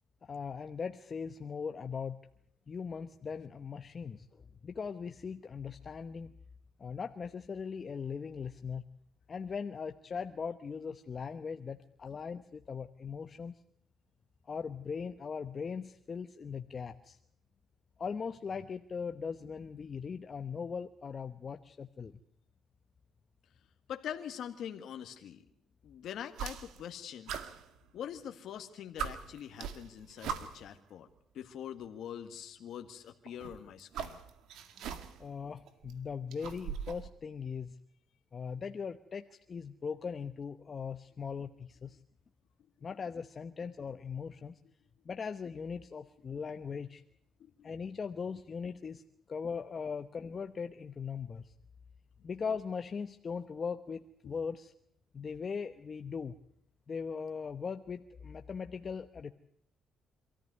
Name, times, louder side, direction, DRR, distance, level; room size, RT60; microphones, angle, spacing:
voice 1, 0.2-2.2 2.7-6.3 6.8-8.8 9.3-13.6 14.5-17.2 18.0-22.1 35.2-37.8 38.3-42.0 42.8-44.6 45.0-47.0 47.6-49.0 49.3-51.5 52.2-54.7 55.1-56.4 56.9-59.3, left 6 dB, 40° left, 7 dB, 1.0 m, -39 dB
voice 2, 23.9-25.4 25.8-27.4 27.9-31.1 31.3-34.2 47.4-47.7 54.2-54.3, left 9 dB, 75° left, 6 dB, 1.7 m, -44 dB
sound 1, 26.3-26.9 27.3-28.3 28.6-28.7 29.0-30.8 31.8-31.9 33.3-35.3 35.7-37.1, right 7 dB, 85° right, 1.9 m, -41 dB
26.5 x 14.5 x 9.6 m, 0.70 s
cardioid pair, 90°, 0 cm